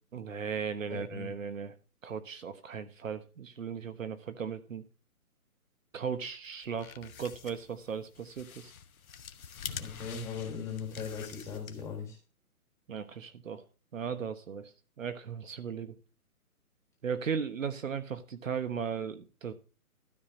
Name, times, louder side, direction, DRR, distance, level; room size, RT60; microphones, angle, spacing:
voice 1, 0.1-1.7 2.0-4.8 5.9-8.7 12.9-13.6 13.9-15.9 17.0-19.5, right 6 dB, 60° right, 10 dB, 1.2 m, -37 dB
voice 2, 0.9-1.3 9.6-12.2, left 6 dB, 5° left, 0 dB, 1.5 m, -39 dB
sound 1, 6.5-12.1, left 7 dB, 65° left, 1.0 m, -46 dB
12.5 x 4.3 x 6.1 m, 0.34 s
hypercardioid pair, 160°, 44 cm